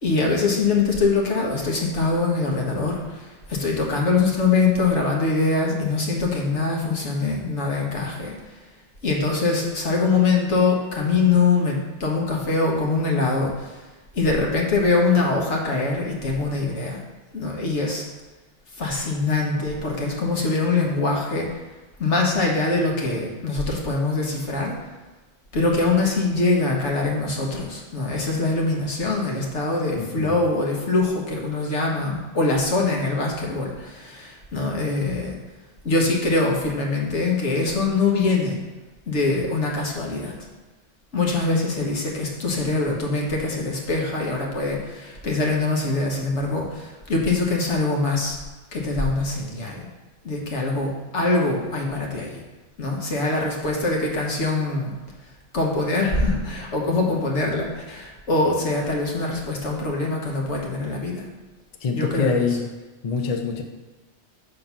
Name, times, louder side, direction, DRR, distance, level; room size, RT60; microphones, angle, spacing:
voice 1, 0.0-8.6 9.0-13.8 14.1-17.0 17.3-18.0 18.8-21.6 22.0-24.8 25.5-35.4 35.8-38.6 39.1-40.5 41.1-48.4 48.7-49.9 50.2-52.4 52.8-54.9 55.5-61.3 61.9-62.3, left 3 dB, 80° left, -1 dB, 1.4 m, -23 dB
voice 2, 30.0-30.4 61.8-62.7 63.0-63.6, left 5 dB, 45° left, 4 dB, 0.5 m, -25 dB
5.8 x 3.8 x 5.4 m, 1.2 s
omnidirectional pair, 1.2 m